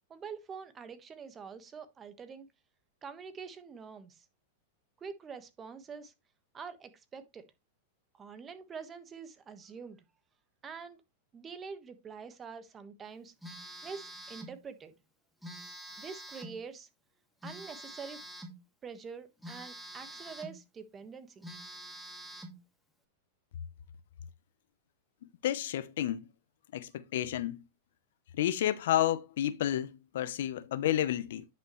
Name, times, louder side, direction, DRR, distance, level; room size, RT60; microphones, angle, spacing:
voice 1, 0.1-2.5 3.0-4.2 5.0-6.1 6.5-7.4 8.2-10.0 10.6-11.0 11.3-13.3 13.8-14.9 16.0-16.9 17.4-18.2 18.8-21.4, right 5 dB, 20° right, 1.4 m, -45 dB
Telephone, 13.4-14.6 15.4-16.6 17.4-18.6 19.4-20.6 21.0-21.1 21.4-22.6, right 1 dB, ahead, 2.1 m, -46 dB
voice 2, 25.4-26.2 26.7-27.6 28.4-31.4, left 12 dB, 70° left, 0.8 m, -31 dB
10.0 x 5.8 x 3.1 m
hypercardioid pair, 125°, 0 cm